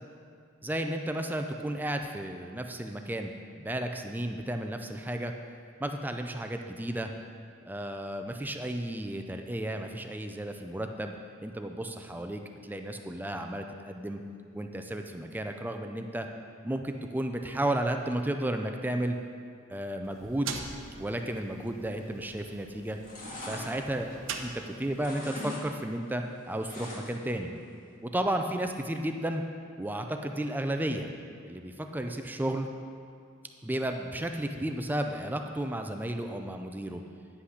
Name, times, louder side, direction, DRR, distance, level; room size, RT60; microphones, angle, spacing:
voice 1, 0.6-3.3 3.6-5.3 5.8-7.1 7.7-11.1 11.4-14.2 14.5-16.3 16.6-19.2 19.7-20.5 21.0-23.0 23.4-24.1 24.4-27.5 28.0-29.4 29.8-31.1 31.4-32.7 33.6-37.0, right 1 dB, 10° right, 5 dB, 0.4 m, -33 dB
sound 1, 20.0-25.1, right 5 dB, 85° right, 0.8 m, -43 dB
sound 2, 22.2-22.6 22.9-24.6 24.9-25.7 25.9-27.3 27.7-27.8, left 2 dB, 45° left, 1.7 m, -41 dB
9.8 x 5.8 x 6.5 m, 2.2 s
head